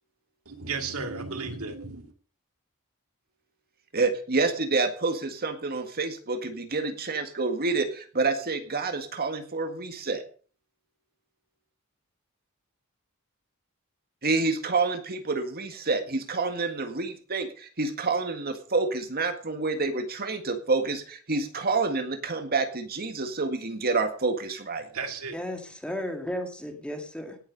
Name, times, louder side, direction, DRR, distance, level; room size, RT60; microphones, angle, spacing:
voice 1, 0.5-2.1 24.9-25.4, right 4 dB, 75° right, 6 dB, 2.2 m, -34 dB
voice 2, 3.9-10.2 14.2-24.8, right 3 dB, 45° right, 7 dB, 1.9 m, -28 dB
voice 3, 25.3-27.4, left 1 dB, 5° left, 4 dB, 2.3 m, -34 dB
18.0 x 7.4 x 5.4 m, 0.41 s
head